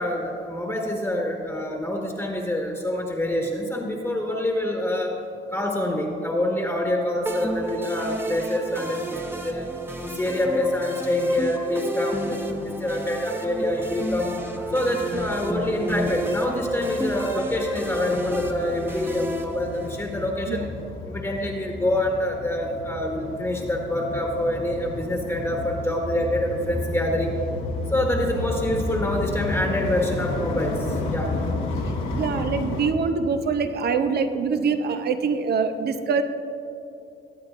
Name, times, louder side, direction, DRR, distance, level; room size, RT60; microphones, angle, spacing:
voice 1, 0.0-5.2 5.5-9.7 10.0-14.3 14.7-20.7 21.1-27.4 27.9-31.3, left 1 dB, 10° left, 0 dB, 1.4 m, -26 dB
sound 1, 7.3-20.3, equal, 10° right, 1.1 m, -31 dB
sound 2, 13.6-32.9, left 2 dB, 80° left, 1.4 m, -32 dB
voice 2, 32.1-36.2, right 5 dB, 55° right, 8 dB, 0.8 m, -24 dB
20.5 x 8.8 x 2.6 m, 2.7 s
cardioid pair, 90°, 20 cm